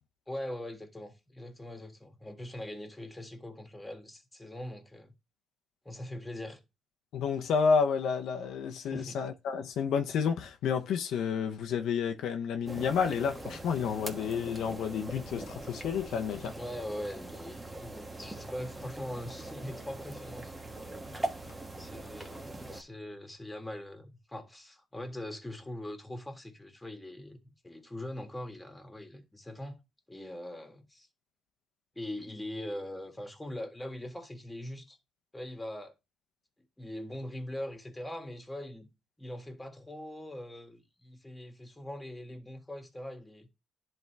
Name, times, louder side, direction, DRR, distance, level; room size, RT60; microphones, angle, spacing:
voice 1, 0.3-5.1 5.8-6.6 8.8-9.2 16.6-20.8 21.8-29.8 30.1-31.1 31.9-35.0 35.3-35.9 36.8-38.9 39.2-43.5, left 1 dB, 10° left, 1.7 m, -42 dB
voice 2, 7.1-16.5, left 6 dB, 80° left, 0.8 m, -30 dB
sound 1, 12.7-22.8, right 1 dB, 15° right, 1.2 m, -42 dB
10.5 x 3.6 x 3.3 m
cardioid pair, 90°, 0 cm